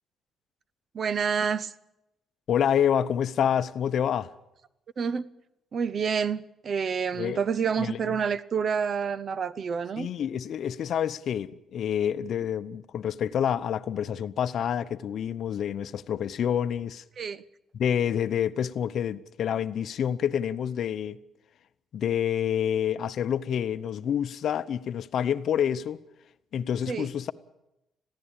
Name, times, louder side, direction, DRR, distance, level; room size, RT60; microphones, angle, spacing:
voice 1, 0.9-1.7 5.0-5.3 5.7-10.1 17.2-17.4 26.9-27.1, right 6 dB, 50° right, 0.8 m, -28 dB
voice 2, 2.5-4.3 7.2-7.4 7.8-8.2 10.0-17.0 17.7-21.2 21.9-26.0 26.5-27.3, left 9 dB, 65° left, 0.8 m, -28 dB
21.5 x 15.5 x 8.9 m
cardioid pair, 90°, 0 cm